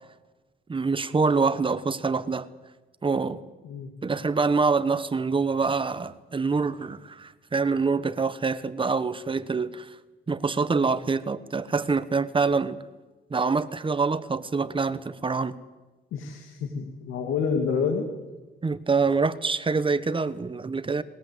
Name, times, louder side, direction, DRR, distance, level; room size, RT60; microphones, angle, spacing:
voice 1, 0.7-2.5 3.0-3.4 4.0-9.9 10.3-12.8 13.3-15.5 18.6-21.0, right 4 dB, 25° right, 14 dB, 1.3 m, -25 dB
voice 2, 16.1-18.1, left 6 dB, 85° left, 4 dB, 2.5 m, -28 dB
20.0 x 20.0 x 8.2 m, 1.2 s
cardioid pair, 90°, 20 cm